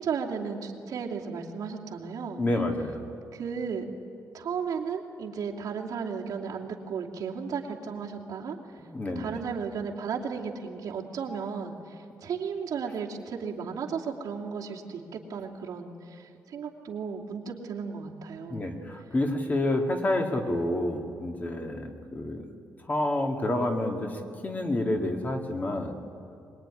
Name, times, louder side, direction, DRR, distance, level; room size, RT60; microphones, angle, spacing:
voice 1, 0.0-2.4 3.3-3.8 4.3-8.8 9.2-18.6, right 6 dB, 65° right, -1 dB, 2.7 m, -34 dB
voice 2, 2.4-3.1 8.8-9.4 18.5-22.5 22.9-26.0, left 1 dB, 25° left, 4 dB, 2.2 m, -29 dB
23.5 x 21.0 x 10.0 m, 2.5 s
wide cardioid pair, 155°, 7 cm